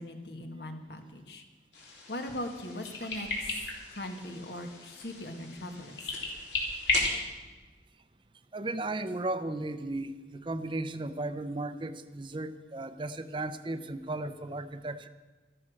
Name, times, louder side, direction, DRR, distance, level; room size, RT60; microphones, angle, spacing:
voice 1, 0.0-1.4 2.1-3.3 3.9-6.0, left 1 dB, 70° left, 5 dB, 1.7 m, -39 dB
sound 1, 1.7-7.1, left 2 dB, 85° left, 3.6 m, -35 dB
voice 2, 8.5-15.1, right 2 dB, 30° right, 11 dB, 0.6 m, -35 dB
13.5 x 13.0 x 6.5 m, 1.3 s
head